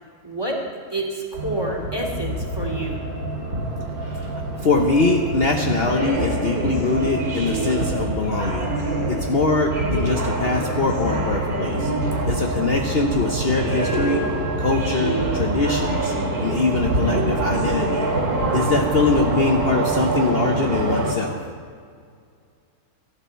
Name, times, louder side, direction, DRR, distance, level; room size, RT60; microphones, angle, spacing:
voice 1, 0.2-0.6 0.9-3.0, right 1 dB, 15° right, -1 dB, 2.4 m, -28 dB
sound 1, 1.3-21.1, right 2 dB, 85° right, 3.1 m, -25 dB
voice 2, 4.0-8.7 9.1-11.9 12.3-14.2 14.6-16.1 16.4-18.1 18.5-21.5, left 3 dB, 45° left, 2 dB, 1.0 m, -23 dB
18.0 x 13.0 x 4.5 m, 2.1 s
omnidirectional pair, 1.6 m